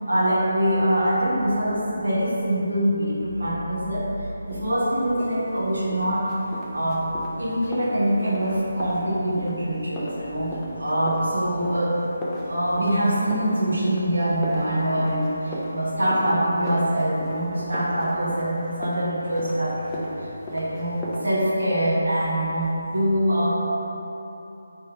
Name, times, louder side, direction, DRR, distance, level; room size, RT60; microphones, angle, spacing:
voice 1, 0.1-4.1 4.4-6.3 6.7-7.1 7.4-12.0 12.5-20.1 20.5-23.6, right 1 dB, 70° right, -7 dB, 1.1 m, -24 dB
sound 1, 4.5-21.2, equal, 10° left, 0.6 m, -37 dB
3.3 x 3.3 x 4.8 m, 2.9 s
figure-of-eight pair, 150°, 0 cm